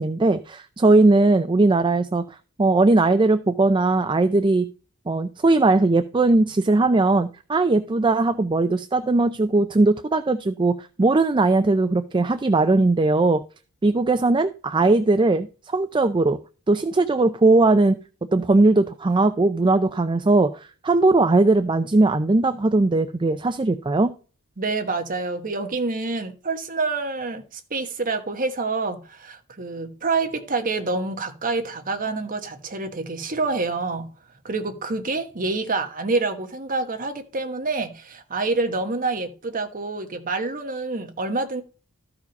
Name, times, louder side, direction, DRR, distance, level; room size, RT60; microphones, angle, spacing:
voice 1, 0.0-2.2 2.6-4.7 5.1-13.4 13.8-16.4 16.7-18.0 18.3-24.1, right 2 dB, 20° right, 0.4 m, -19 dB
voice 2, 24.6-34.1 34.4-41.6, right 3 dB, 40° right, 1.2 m, -27 dB
13.5 x 4.8 x 5.3 m
head